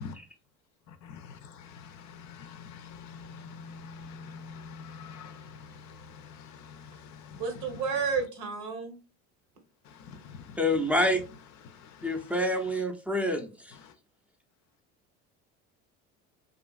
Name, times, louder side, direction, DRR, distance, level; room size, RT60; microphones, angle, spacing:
voice 1, 1.0-7.4 10.1-10.4, left 5 dB, 55° left, 0.4 m, -45 dB
voice 2, 7.3-8.9, right 5 dB, 80° right, 1.0 m, -31 dB
voice 3, 10.6-11.2 12.0-13.8, left 1 dB, 5° right, 0.4 m, -27 dB
2.7 x 2.4 x 2.3 m
supercardioid pair, 85°, 33 cm